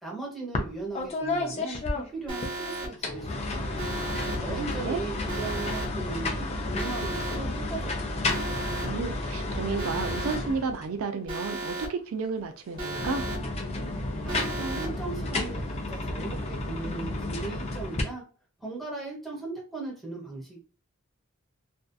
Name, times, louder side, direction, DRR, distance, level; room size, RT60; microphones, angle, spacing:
voice 1, 0.0-3.9 4.4-8.3 14.2-18.2 18.6-20.6, right 3 dB, ahead, 1.1 m, -38 dB
sound 1, 0.5-0.7 1.0-2.5 2.9-11.0 12.7-18.0, left 2 dB, 30° left, 0.5 m, -32 dB
Alarm, 2.3-2.9 3.8-4.4 5.3-5.9 6.8-7.4 8.3-8.9 9.8-10.4 11.3-11.9 12.8-13.4 14.3-14.9, right 2 dB, 25° right, 1.1 m, -34 dB
voice 2, 4.2-5.0 8.8-13.3, right 4 dB, 70° right, 0.4 m, -32 dB
2.6 x 2.3 x 2.3 m
head